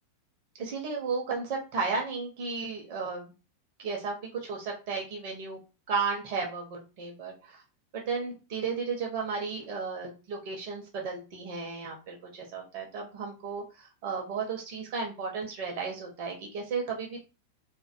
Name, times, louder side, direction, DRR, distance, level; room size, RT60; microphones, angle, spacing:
voice 1, 0.6-3.3 3.8-5.6 5.9-7.6 7.9-17.2, right 4 dB, 45° right, 0 dB, 0.6 m, -34 dB
2.3 x 2.1 x 2.5 m, 0.30 s
figure-of-eight pair, 90°, 0 cm